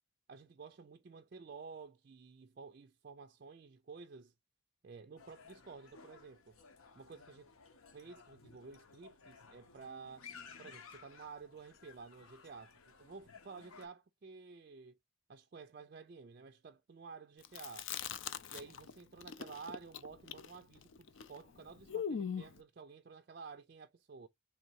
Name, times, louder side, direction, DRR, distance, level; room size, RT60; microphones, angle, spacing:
voice 1, 0.3-4.3 4.8-6.6 6.9-7.5 7.9-10.3 10.6-15.0 15.3-17.9 18.5-24.3, right 5 dB, 40° right, 0.4 m, -52 dB
sound 1, 5.2-13.9, left 5 dB, 75° left, 0.8 m, -57 dB
Chewing mastication, 17.4-18.9 19.2-22.6, left 7 dB, 60° left, 0.5 m, -41 dB
3.4 x 2.6 x 4.5 m
head